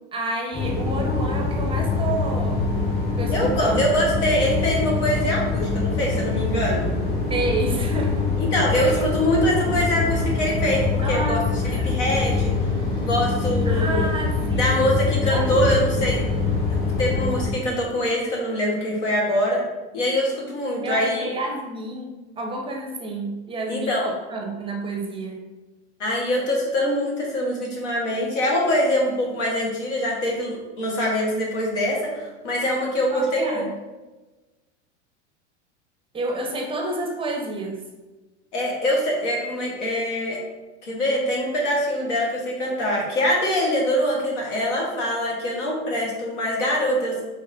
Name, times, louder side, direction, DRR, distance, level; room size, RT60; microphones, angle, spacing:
voice 1, 0.1-2.6 3.2-3.9 7.3-8.3 8.7-9.0 11.0-12.0 13.7-14.9 15.2-16.1 20.8-25.4 33.1-33.7 36.1-37.9, right 2 dB, 15° right, 1 dB, 0.5 m, -30 dB
sound 1, 0.5-17.5, left 3 dB, 30° left, 1.3 m, -24 dB
voice 2, 3.3-6.9 8.4-12.5 13.0-14.1 14.6-16.2 17.0-19.6 19.9-21.3 23.7-24.1 26.0-33.6 38.5-40.4 40.8-47.2, equal, 85° left, -2 dB, 1.3 m, -24 dB
4.7 x 2.9 x 2.6 m, 1.2 s
hypercardioid pair, 115°, 35 cm